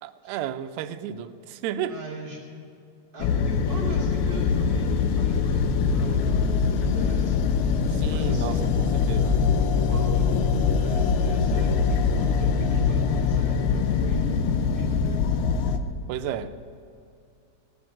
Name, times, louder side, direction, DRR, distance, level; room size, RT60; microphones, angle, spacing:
voice 1, 0.0-2.0 7.9-9.4 16.1-16.5, right 10 dB, 85° right, 11 dB, 2.6 m, -33 dB
voice 2, 1.9-2.4 3.1-7.4 8.1-8.7 9.9-15.2, right 2 dB, 30° right, -4 dB, 2.8 m, -38 dB
sound 1, 3.2-15.8, left 5 dB, 80° left, 2.5 m, -23 dB
18.0 x 7.1 x 9.2 m, 2.4 s
omnidirectional pair, 4.8 m